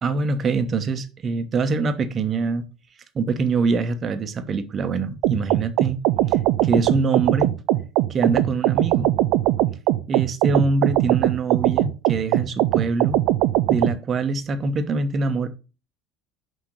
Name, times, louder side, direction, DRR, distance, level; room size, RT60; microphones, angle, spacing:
voice 1, 0.0-2.6 3.1-6.0 6.3-7.5 8.1-9.1 10.1-13.2 13.7-15.5, right 4 dB, 35° right, 1.1 m, -24 dB
sound 1, 5.2-14.0, right 15 dB, 60° right, 0.5 m, -20 dB
6.0 x 5.2 x 6.4 m
figure-of-eight pair, 70°, 0 cm